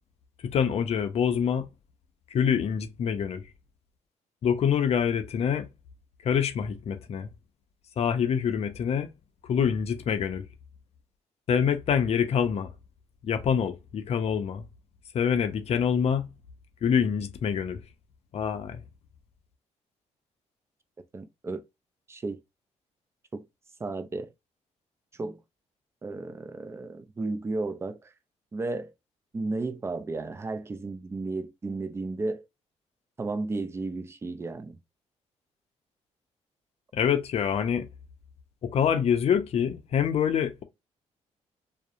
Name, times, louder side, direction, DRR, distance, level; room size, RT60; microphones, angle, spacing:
voice 1, 0.4-1.7 2.3-3.4 4.4-5.7 6.2-7.3 8.0-9.1 9.5-10.5 11.5-12.7 13.2-14.6 15.1-16.3 16.8-17.8 18.3-18.8 36.9-37.9 38.6-40.6, left 7 dB, 55° left, 0.5 m, -26 dB
voice 2, 21.1-21.6 22.1-22.4 23.3-23.5 23.8-24.3 25.2-25.4 26.0-28.1 28.5-28.9 29.3-32.4 33.2-34.8, right 3 dB, 20° right, 0.4 m, -33 dB
2.7 x 2.0 x 2.4 m
cardioid pair, 100°, 13 cm